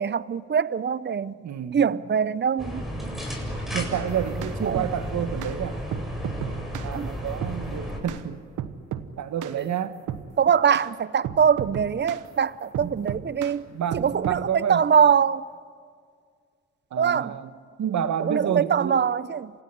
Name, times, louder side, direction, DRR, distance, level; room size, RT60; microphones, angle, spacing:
voice 1, 0.0-1.3 1.7-2.8 4.7-4.9 6.9-7.1 10.4-13.6 13.9-15.4 17.0-17.4 18.2-19.5, right 7 dB, 35° right, 0.8 m, -23 dB
voice 2, 1.4-1.8 3.0-3.2 3.7-5.9 6.8-8.4 9.2-10.0 12.8-12.9 13.7-14.8 16.9-17.5 17.8-19.0, right 9 dB, 70° right, 1.5 m, -29 dB
sound 1, 2.6-8.0, equal, ahead, 7.7 m, -32 dB
sound 2, 4.1-4.9 5.4-5.6 5.9-6.9 7.4-7.6 8.1-8.2 8.6-9.1 9.4-9.6 10.1-10.3 10.7-10.9 11.2-12.3 12.7-13.6 13.9-14.4, right 10 dB, 85° right, 1.2 m, -33 dB
29.0 x 16.0 x 9.9 m
cardioid pair, 65°, 30 cm